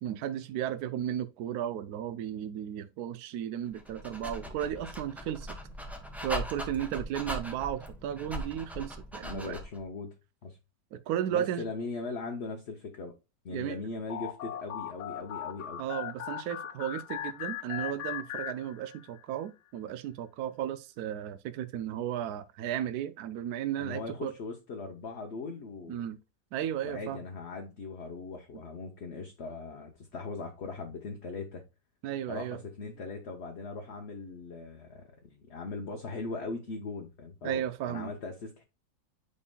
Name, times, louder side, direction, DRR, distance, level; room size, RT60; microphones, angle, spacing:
voice 1, 0.0-5.6 6.2-9.6 10.9-11.6 13.5-13.8 15.8-24.3 25.9-26.2 26.5-27.2 32.0-32.6 37.4-38.1, right 10 dB, 70° right, 0.9 m, -34 dB
Dog, 3.7-9.8, equal, ahead, 0.6 m, -40 dB
voice 2, 9.2-10.1 10.4-10.6 11.3-13.1 13.4-15.8 23.8-26.0 26.8-31.6 32.3-37.6 37.9-38.6, left 3 dB, 50° left, 0.9 m, -39 dB
sound 1, 14.1-19.2, left 11 dB, 70° left, 1.2 m, -39 dB
8.2 x 5.3 x 2.2 m
omnidirectional pair, 1.9 m